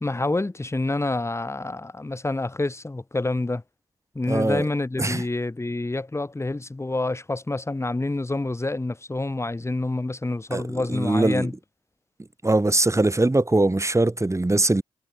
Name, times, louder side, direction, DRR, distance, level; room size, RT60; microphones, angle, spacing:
voice 1, 0.0-3.6 4.1-11.5, left 2 dB, 20° left, 1.3 m, -27 dB
voice 2, 4.3-4.7 5.0-5.2 10.5-10.6 10.9-11.5 12.4-14.8, right 2 dB, 20° right, 3.1 m, -21 dB
hypercardioid pair, 40°, 15 cm